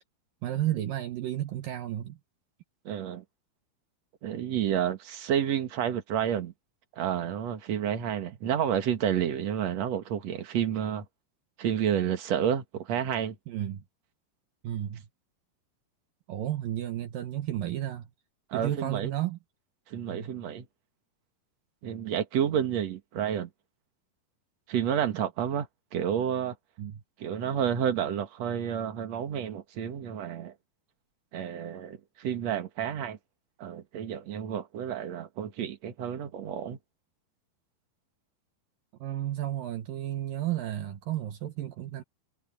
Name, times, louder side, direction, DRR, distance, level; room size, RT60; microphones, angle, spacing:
voice 1, 0.4-2.2 13.5-13.8 14.6-15.0 16.3-18.1 18.5-19.4 20.1-20.3 26.8-27.0 39.0-42.0, right 12 dB, 70° right, 2.7 m, -32 dB
voice 2, 2.9-3.2 4.2-6.5 7.0-11.1 11.6-13.4 18.5-19.1 19.9-20.7 21.8-23.5 24.7-25.7 25.9-26.6 27.2-30.5 31.3-33.2 33.6-36.8, right 9 dB, 50° right, 2.5 m, -30 dB
omnidirectional pair, 4.4 m